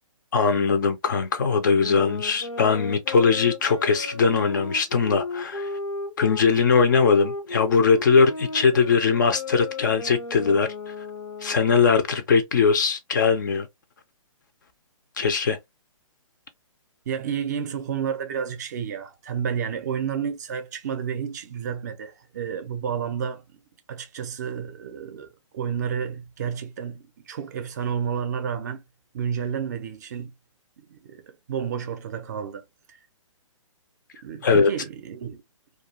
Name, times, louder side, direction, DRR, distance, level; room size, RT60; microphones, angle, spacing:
voice 1, 0.3-5.7 6.2-10.7 11.4-13.7 15.2-15.6 34.4-34.7, left 5 dB, 35° left, 0.4 m, -20 dB
sound 1, 1.8-6.4 6.9-11.9, left 3 dB, 75° left, 0.6 m, -34 dB
voice 2, 17.1-23.6 23.9-25.3 25.5-28.8 29.1-30.3 30.8-32.6 32.9-33.0 34.2-35.4, right 7 dB, 30° right, 0.5 m, -31 dB
2.3 x 2.3 x 2.7 m
figure-of-eight pair, 130°, 17 cm